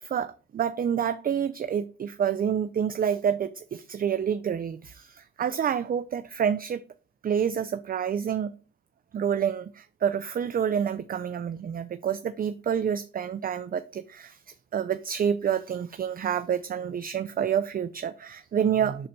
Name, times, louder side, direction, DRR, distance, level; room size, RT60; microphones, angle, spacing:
voice 1, 0.0-6.8 7.2-8.5 9.1-14.4 14.7-19.1, right 8 dB, 30° right, 0.4 m, -28 dB
6.5 x 4.0 x 4.3 m
cardioid pair, 90°, 30 cm